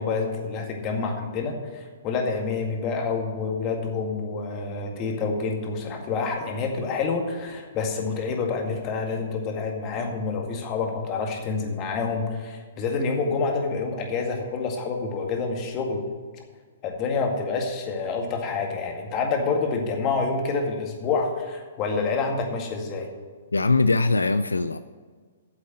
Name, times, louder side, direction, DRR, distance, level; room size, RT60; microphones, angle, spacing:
voice 1, 0.0-16.0 16.8-23.1, left 4 dB, 30° left, 2 dB, 2.0 m, -28 dB
voice 2, 23.5-24.8, left 3 dB, 90° left, 12 dB, 0.4 m, -21 dB
8.8 x 7.5 x 7.7 m, 1.5 s
figure-of-eight pair, 120°, 0 cm